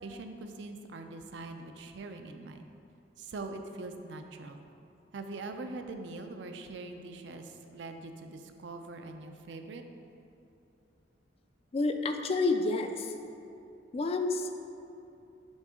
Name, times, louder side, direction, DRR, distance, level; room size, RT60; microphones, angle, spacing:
voice 1, 0.0-2.7 3.2-4.7 5.1-9.8, right 3 dB, 70° right, 6 dB, 0.4 m, -43 dB
voice 2, 11.7-13.1 13.9-14.5, left 3 dB, 35° left, 6 dB, 0.3 m, -29 dB
6.3 x 4.9 x 3.6 m, 2.7 s
head